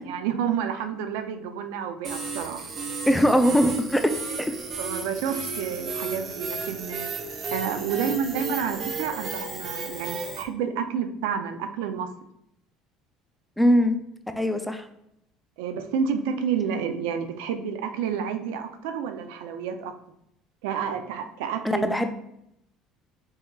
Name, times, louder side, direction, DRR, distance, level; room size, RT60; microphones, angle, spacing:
voice 1, 0.1-2.7 4.8-7.2 7.5-12.1 15.6-19.9 20.6-21.9, right 7 dB, 90° right, 8 dB, 0.4 m, -30 dB
sound 1, 2.0-10.4, right 4 dB, 40° right, 0.6 m, -33 dB
voice 2, 3.1-4.0 13.6-14.0 14.4-14.9 21.6-22.1, equal, 5° left, 7 dB, 0.3 m, -21 dB
4.1 x 3.6 x 2.3 m, 0.77 s
cardioid pair, 120°, 0 cm